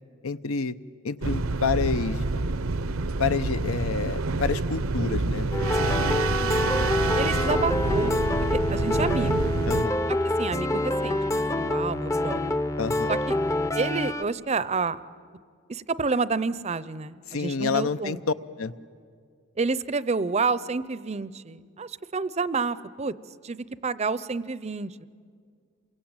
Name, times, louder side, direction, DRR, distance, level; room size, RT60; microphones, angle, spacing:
voice 1, 0.2-0.7 1.0-2.2 3.2-5.5 9.7-10.0 12.8-13.2 17.3-18.2 18.6-18.7, left 5 dB, 80° left, 13 dB, 0.8 m, -28 dB
sound 1, 1.2-9.8, right 3 dB, 75° right, 0.8 m, -27 dB
sound 2, 5.5-14.2, left 1 dB, 15° left, 0.6 m, -26 dB
voice 2, 6.0-8.2 8.5-9.5 10.1-12.6 13.1-13.4 13.7-15.0 15.7-18.2 19.6-23.1 23.4-25.1, right 4 dB, 30° right, 17 dB, 0.6 m, -29 dB
27.5 x 23.5 x 8.9 m, 2.1 s
head